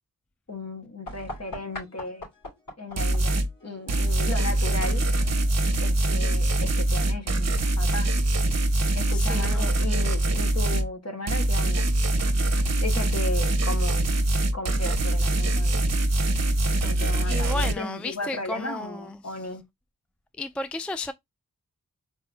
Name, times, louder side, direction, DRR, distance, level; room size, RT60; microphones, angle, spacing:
voice 1, 0.5-2.3 2.8-5.0 5.8-8.1 8.9-11.9 12.8-14.3 14.5-15.9 16.8-19.6, left 2 dB, 45° left, 1.5 m, -35 dB
sound 1, 1.0-6.6, left 1 dB, 65° left, 3.0 m, -44 dB
sound 2, 3.0-3.5 3.9-10.9 11.3-17.7, right 1 dB, 50° right, 0.9 m, -23 dB
voice 2, 9.1-9.8 17.2-19.4 20.4-21.1, left 2 dB, 5° left, 0.3 m, -34 dB
4.2 x 2.6 x 3.4 m
cardioid pair, 45°, 35 cm